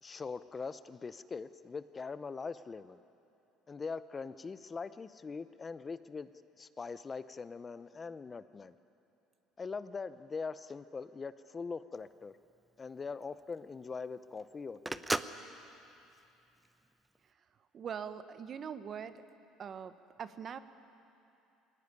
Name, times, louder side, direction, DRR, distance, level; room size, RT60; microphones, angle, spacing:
voice 1, 0.0-3.0 3.7-6.3 6.6-8.7 9.6-12.4 12.8-15.0, left 4 dB, 25° left, 14 dB, 0.7 m, -42 dB
Telephone, 11.9-17.2, right 2 dB, 10° right, 0.7 m, -40 dB
voice 2, 17.7-19.2 19.6-20.6, right 7 dB, 45° right, 11 dB, 1.1 m, -42 dB
21.0 x 18.0 x 9.8 m, 2.8 s
supercardioid pair, 95°, 0 cm